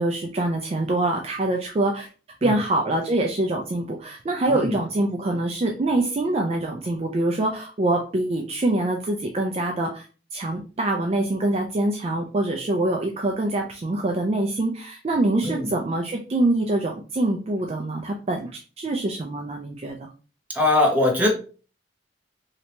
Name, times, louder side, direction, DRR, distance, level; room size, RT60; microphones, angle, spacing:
voice 1, 0.0-2.1 2.4-10.1 10.3-20.1, right 2 dB, 35° right, 2 dB, 0.4 m, -25 dB
voice 2, 20.5-21.3, left 2 dB, 10° right, -1 dB, 0.9 m, -21 dB
2.9 x 2.8 x 3.2 m, 0.37 s
head